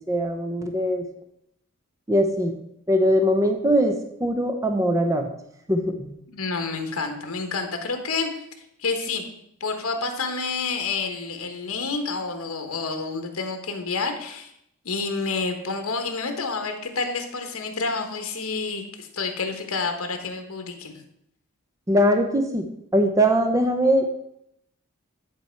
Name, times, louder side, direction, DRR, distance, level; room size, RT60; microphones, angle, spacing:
voice 1, 0.1-1.0 2.1-2.5 2.9-3.9 4.2-5.3 5.7-6.1 21.9-22.6 22.9-24.1, equal, 15° right, 5 dB, 0.6 m, -21 dB
voice 2, 6.3-8.3 8.8-9.2 9.6-14.5 14.8-21.0, left 4 dB, 65° left, 5 dB, 1.2 m, -29 dB
10.0 x 4.5 x 4.5 m, 0.76 s
head